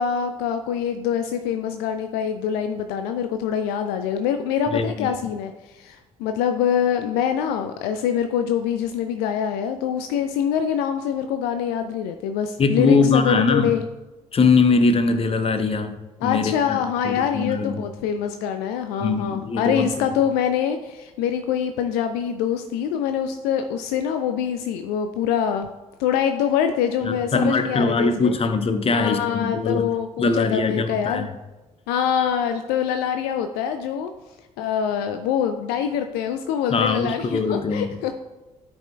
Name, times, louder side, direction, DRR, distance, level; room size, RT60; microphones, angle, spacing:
voice 1, 0.0-13.8 16.2-25.7 26.0-28.3 28.9-31.3 31.9-34.1 34.6-38.2, left 8 dB, 65° left, 7 dB, 0.4 m, -24 dB
voice 2, 4.7-5.1 12.6-13.7 14.3-16.0 16.2-16.8 17.0-17.8 19.0-19.9 27.3-29.9 30.2-31.3 36.7-37.9, left 4 dB, 35° left, 9 dB, 0.8 m, -21 dB
12.0 x 5.2 x 2.3 m, 1.1 s
figure-of-eight pair, 45°, 18 cm